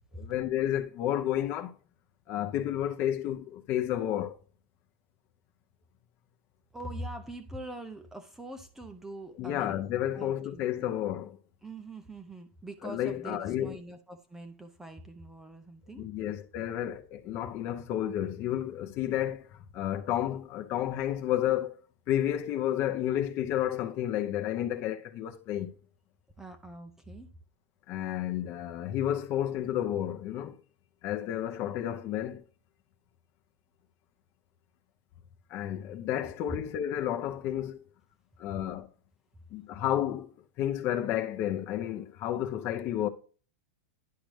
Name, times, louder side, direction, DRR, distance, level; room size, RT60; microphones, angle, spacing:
voice 1, 0.2-1.7 2.3-4.4 9.4-11.4 12.8-13.8 16.0-21.7 22.1-25.7 27.9-30.6 31.0-32.4 35.5-37.8 38.4-38.9 39.5-43.1, left 11 dB, 35° left, 0.7 m, -31 dB
voice 2, 6.7-9.8 10.1-10.9 11.6-16.1 26.4-27.3 36.2-36.3 39.7-39.8, right 1 dB, 5° right, 0.5 m, -43 dB
10.5 x 5.1 x 3.2 m
supercardioid pair, 155°, 7 cm